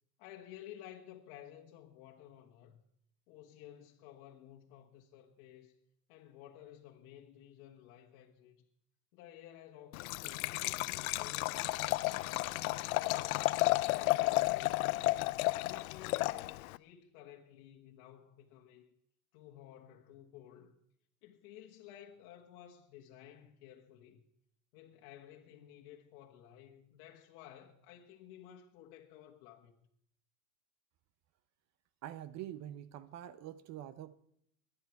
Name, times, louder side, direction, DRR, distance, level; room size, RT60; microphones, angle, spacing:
voice 1, 0.2-2.8 3.3-5.7 6.1-8.6 9.1-11.6 12.1-14.8 15.4-18.9 19.3-20.7 21.2-24.2 24.7-29.7, left 11 dB, 60° left, 1.6 m, -54 dB
Liquid, 9.9-16.8, left 20 dB, 80° left, 0.6 m, -32 dB
voice 2, 32.0-34.2, right 12 dB, 40° right, 0.7 m, -45 dB
23.0 x 9.6 x 4.7 m
supercardioid pair, 125°, 43 cm